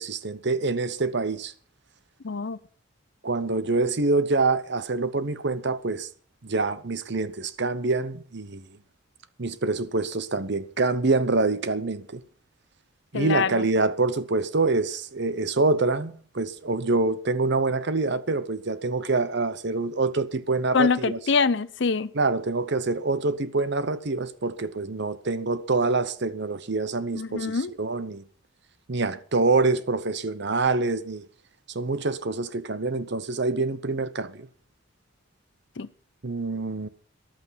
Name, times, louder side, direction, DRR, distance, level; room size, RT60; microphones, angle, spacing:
voice 1, 0.0-1.5 3.2-6.1 6.4-8.6 9.4-12.2 13.1-21.2 22.1-28.2 28.9-31.2 31.7-34.5 36.2-36.9, right 3 dB, 55° right, 0.8 m, -26 dB
voice 2, 2.2-2.6 13.1-13.6 20.7-22.1 27.1-27.7 35.8-35.9, left 4 dB, 55° left, 0.6 m, -24 dB
14.0 x 11.5 x 5.8 m
head